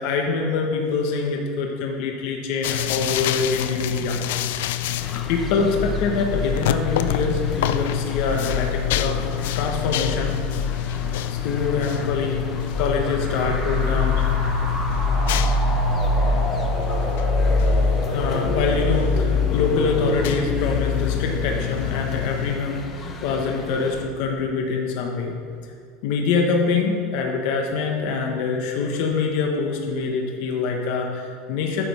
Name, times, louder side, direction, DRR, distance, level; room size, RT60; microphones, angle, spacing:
voice 1, 0.0-4.2 4.5-4.8 5.3-9.3 9.5-10.4 11.3-12.5 12.8-14.2 15.4-15.6 18.1-25.3 26.0-31.8, left 4 dB, 55° left, 1 dB, 1.1 m, -25 dB
sound 1, 2.6-22.6, left 11 dB, 80° left, 0.4 m, -28 dB
sound 2, 5.0-24.0, left 4 dB, 25° left, 0.7 m, -34 dB
sound 3, 12.7-24.0, left 2 dB, 5° right, 2.4 m, -24 dB
9.6 x 5.2 x 6.6 m, 2.3 s
supercardioid pair, 165°, 0 cm